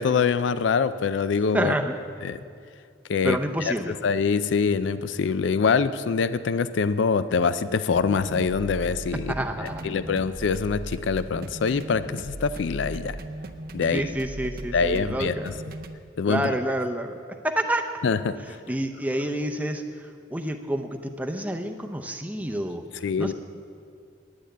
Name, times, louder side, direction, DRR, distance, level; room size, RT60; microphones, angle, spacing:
voice 1, 0.0-1.7 2.2-2.4 3.1-3.4 4.0-9.3 9.8-13.2 13.7-14.0 14.7-15.3 16.2-16.4 18.0-18.3 23.0-23.3, left 5 dB, 70° left, 13 dB, 0.4 m, -24 dB
voice 2, 1.5-2.0 3.2-3.9 9.3-10.0 13.9-15.5 16.3-17.2 17.4-17.9 18.7-23.3, right 1 dB, 10° right, 4 dB, 0.6 m, -28 dB
sound 1, 7.9-16.0, right 2 dB, 50° right, 0.6 m, -37 dB
10.0 x 8.9 x 9.2 m, 2.3 s
head